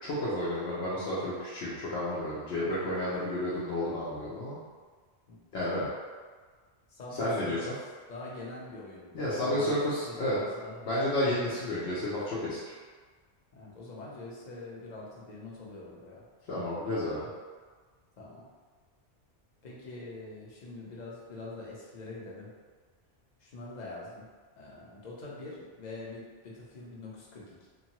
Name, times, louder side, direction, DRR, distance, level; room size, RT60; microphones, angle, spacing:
voice 1, 0.0-4.6 5.5-5.9 7.2-7.6 9.1-10.4 10.9-12.7 16.5-17.3, left 1 dB, 90° left, -10 dB, 0.9 m, -31 dB
voice 2, 6.9-7.7 8.1-11.0 11.2-11.4 13.5-16.2 18.2-18.5 19.6-22.5 23.4-24.3 24.6-27.7, left 2 dB, 50° left, -4 dB, 0.6 m, -44 dB
2.6 x 2.2 x 2.8 m, 1.5 s
omnidirectional pair, 1.1 m